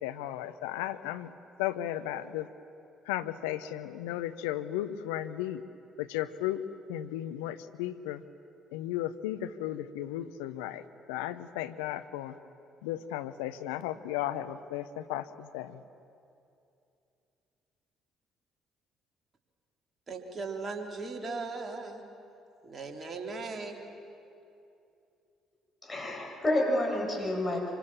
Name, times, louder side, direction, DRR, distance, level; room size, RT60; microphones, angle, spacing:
voice 1, 0.0-1.3 1.6-2.5 3.1-5.6 6.0-6.6 6.9-8.2 8.7-12.4 12.8-15.8, left 13 dB, 75° left, 11 dB, 0.8 m, -35 dB
voice 2, 20.1-22.0 22.6-23.8, right 3 dB, 35° right, 2 dB, 3.5 m, -38 dB
voice 3, 25.8-27.7, left 1 dB, 25° left, -1 dB, 7.3 m, -29 dB
25.5 x 24.5 x 7.3 m, 2.7 s
hypercardioid pair, 50°, 0 cm